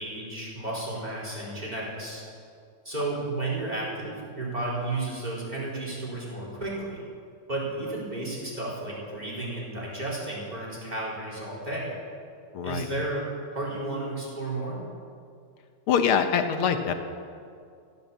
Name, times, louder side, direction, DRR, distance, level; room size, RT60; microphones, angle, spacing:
voice 1, 0.0-2.2 2.8-7.0 7.5-12.0 12.6-14.8, right 2 dB, 20° right, -5 dB, 4.4 m, -33 dB
voice 2, 12.5-12.9 15.9-16.9, left 7 dB, 85° left, 7 dB, 1.9 m, -24 dB
16.0 x 12.0 x 7.2 m, 2.3 s
omnidirectional pair, 2.3 m